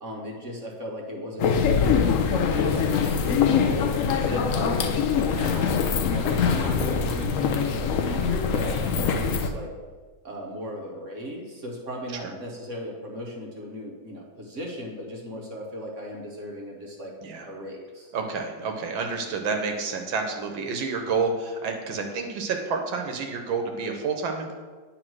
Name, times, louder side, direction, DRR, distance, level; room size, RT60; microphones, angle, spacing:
voice 1, 0.0-4.0 4.2-5.7 6.1-9.7 10.2-17.1 17.4-18.1, equal, 45° right, -1 dB, 1.4 m, -36 dB
sound 1, 1.4-9.5, left 6 dB, 80° left, 0.7 m, -23 dB
voice 2, 18.1-24.5, right 4 dB, 80° right, 4 dB, 1.6 m, -29 dB
9.1 x 4.0 x 6.2 m, 1.4 s
omnidirectional pair, 2.1 m